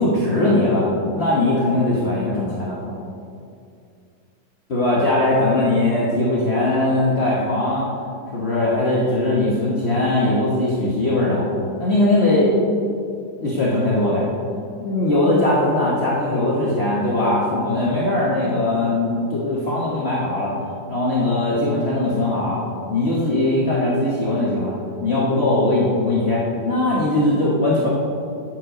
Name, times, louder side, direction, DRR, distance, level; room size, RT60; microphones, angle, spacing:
voice 1, 0.0-3.0 4.7-7.9 8.3-11.4 11.8-12.5 13.4-14.3 14.8-20.5 20.9-22.6 22.9-24.7 25.0-27.9, left 2 dB, 40° left, -6 dB, 1.4 m, -20 dB
9.5 x 7.6 x 5.0 m, 2.4 s
omnidirectional pair, 1.9 m